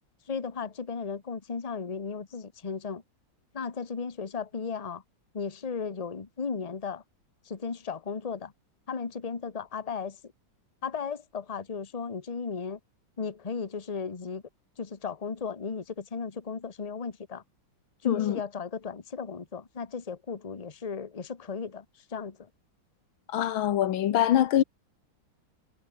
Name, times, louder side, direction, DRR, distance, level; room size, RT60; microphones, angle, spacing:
voice 1, 0.3-3.0 3.5-5.0 5.3-7.0 7.4-8.5 8.9-10.2 10.8-12.8 13.2-14.4 14.8-17.4 18.0-22.5, left 5 dB, 20° left, 1.2 m, -35 dB
voice 2, 18.1-18.4 23.3-24.6, left 11 dB, 90° left, 1.8 m, -24 dB
omnidirectional pair, 2.1 m